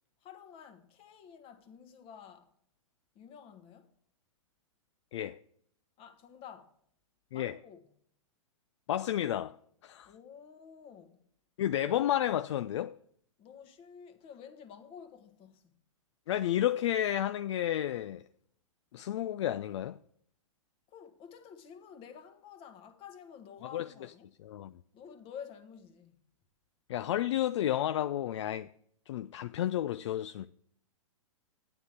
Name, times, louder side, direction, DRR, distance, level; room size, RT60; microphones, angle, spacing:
voice 1, 0.2-2.5 3.1-3.9 6.0-6.7 7.3-7.9 10.0-11.3 13.4-15.7 20.9-24.3 24.9-26.2, left 7 dB, 35° left, 1.5 m, -51 dB
voice 2, 8.9-9.6 9.8-10.1 11.6-13.0 16.3-18.3 18.9-20.0 23.7-23.9 24.4-24.8 26.9-28.7 29.1-30.5, left 12 dB, 60° left, 0.4 m, -31 dB
11.5 x 9.7 x 3.3 m
hypercardioid pair, 115°, 17 cm